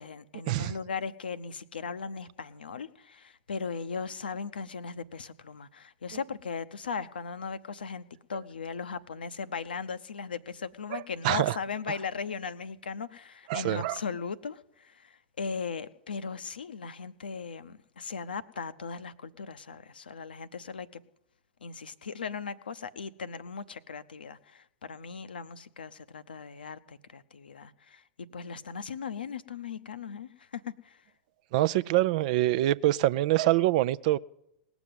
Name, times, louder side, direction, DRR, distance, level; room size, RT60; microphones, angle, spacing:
voice 1, 0.0-21.0 21.6-31.0, left 5 dB, 70° left, 0.7 m, -38 dB
voice 2, 10.9-11.5 13.5-14.0 31.5-34.2, right 16 dB, 50° right, 0.5 m, -25 dB
19.0 x 7.1 x 9.4 m
figure-of-eight pair, 95°, 5 cm